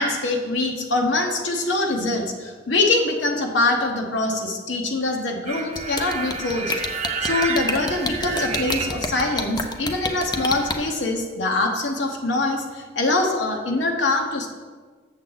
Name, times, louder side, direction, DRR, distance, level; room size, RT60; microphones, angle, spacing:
voice 1, 0.0-6.7 7.2-14.5, left 2 dB, 75° left, 2 dB, 1.0 m, -24 dB
sound 1, 5.5-9.5 9.8-10.9, right 5 dB, 35° right, 0.6 m, -30 dB
sound 2, 5.8-10.7, left 3 dB, 25° left, 0.6 m, -27 dB
7.4 x 7.2 x 3.9 m, 1.5 s
head